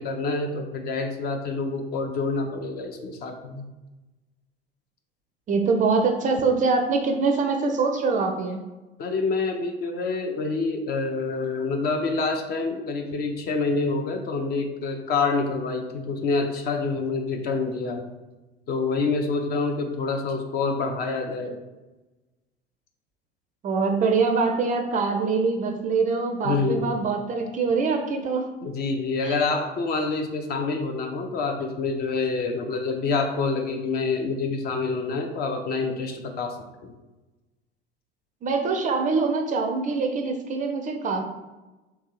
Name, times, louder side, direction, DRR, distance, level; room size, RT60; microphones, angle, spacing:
voice 1, 0.0-3.7 9.0-18.1 18.7-21.6 26.4-26.9 28.6-36.6 36.8-36.9, left 4 dB, 35° left, 5 dB, 0.4 m, -27 dB
voice 2, 5.5-8.6 23.6-28.5 29.2-29.4 38.4-41.2, right 4 dB, 25° right, 4 dB, 0.4 m, -24 dB
2.8 x 2.7 x 3.8 m, 1.1 s
figure-of-eight pair, 65°, 30 cm